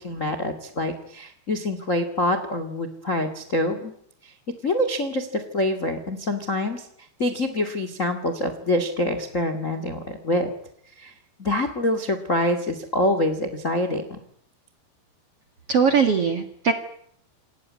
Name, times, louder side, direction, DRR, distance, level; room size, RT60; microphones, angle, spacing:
voice 1, 0.0-3.9 4.2-4.3 4.6-6.8 7.2-10.5 11.0-11.1 11.4-14.2, left 1 dB, 75° left, 9 dB, 0.7 m, -25 dB
voice 2, 15.7-16.7, right 6 dB, 55° right, 7 dB, 1.7 m, -20 dB
28.0 x 19.0 x 9.6 m, 0.69 s
omnidirectional pair, 5.4 m